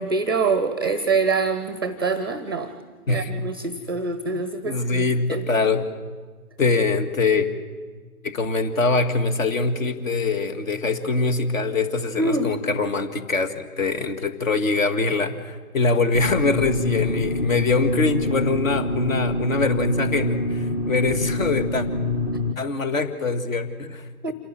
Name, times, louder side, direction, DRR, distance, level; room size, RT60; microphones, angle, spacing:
voice 1, 0.0-2.7 3.1-5.0 5.3-5.4 12.2-12.5 24.2-24.3, right 4 dB, 15° right, 12 dB, 0.5 m, -25 dB
voice 2, 4.3-5.9 6.6-7.5 8.2-21.9 22.6-24.3, left 3 dB, 60° left, 9 dB, 2.0 m, -23 dB
sound 1, 16.1-22.5, left 1 dB, 25° left, 0.7 m, -26 dB
27.0 x 11.5 x 9.2 m, 1.5 s
figure-of-eight pair, 140°, 46 cm